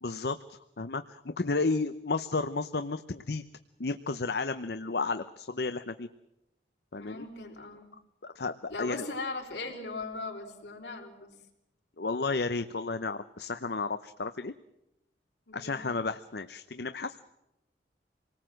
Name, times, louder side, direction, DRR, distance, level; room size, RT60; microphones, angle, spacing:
voice 1, 0.0-3.4 3.8-6.1 6.9-7.3 8.2-9.0 12.0-14.5 15.5-17.1, left 3 dB, 70° left, 11 dB, 0.8 m, -32 dB
voice 2, 6.9-7.9 8.7-11.4 15.5-15.8, left 3 dB, 85° left, 3 dB, 4.5 m, -39 dB
27.0 x 19.0 x 7.7 m, 0.91 s
head